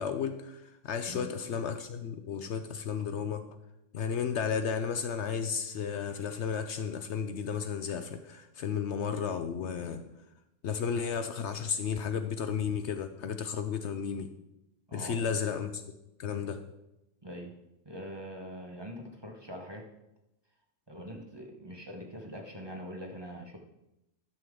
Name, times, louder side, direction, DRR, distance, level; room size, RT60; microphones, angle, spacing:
voice 1, 0.0-3.4 3.9-10.0 10.6-14.3 14.9-15.8 16.2-16.6, left 7 dB, 65° left, 8 dB, 0.9 m, -33 dB
voice 2, 14.9-15.3 17.2-19.9 20.9-23.6, equal, 20° right, 1 dB, 1.0 m, -43 dB
11.5 x 6.9 x 3.7 m, 0.88 s
omnidirectional pair, 1.3 m